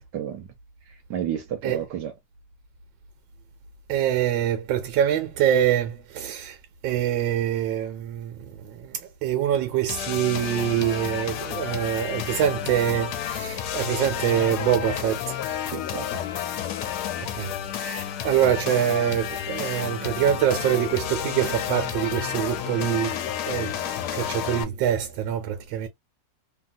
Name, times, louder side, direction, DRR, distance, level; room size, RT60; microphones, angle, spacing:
voice 1, 0.1-0.5 0.9-2.1 15.7-16.6, right 9 dB, 70° right, 1.2 m, -32 dB
voice 2, 3.9-6.6 6.8-15.5 17.3-23.8 24.1-25.9, right 10 dB, 85° right, 1.4 m, -25 dB
sound 1, 9.9-24.6, left 10 dB, 70° left, 1.0 m, -31 dB
2.8 x 2.8 x 2.4 m
omnidirectional pair, 2.1 m